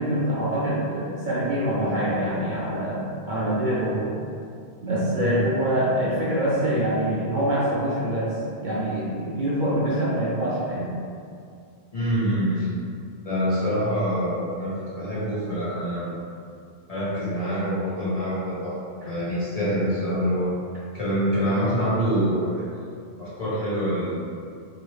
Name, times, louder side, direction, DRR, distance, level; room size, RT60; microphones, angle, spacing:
voice 1, 0.0-4.1 4.8-8.3 8.6-10.9, right 1 dB, 55° right, -8 dB, 0.6 m, -25 dB
voice 2, 5.1-5.5 11.9-12.7 13.2-16.2 16.9-18.8 19.0-20.5 20.9-22.7 23.2-24.2, equal, 35° left, -10 dB, 0.9 m, -25 dB
2.9 x 2.8 x 3.0 m, 2.4 s
omnidirectional pair, 1.1 m